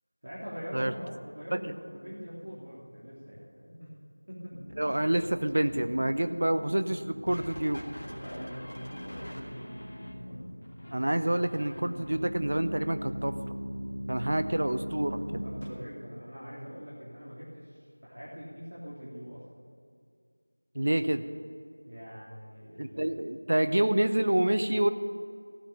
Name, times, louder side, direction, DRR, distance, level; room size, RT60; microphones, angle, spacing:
voice 1, 0.2-3.9 4.3-4.9 8.1-10.4 15.1-19.7 21.8-23.1, equal, 55° right, -8 dB, 3.2 m, -43 dB
sound 1, 4.5-15.7, equal, 35° left, 1.8 m, -41 dB
voice 2, 4.8-7.8 10.9-13.5 14.1-15.4 20.7-21.2 22.8-24.9, right 1 dB, 35° right, 10 dB, 0.5 m, -27 dB
15.5 x 6.0 x 10.0 m, 2.3 s
figure-of-eight pair, 175°, 0 cm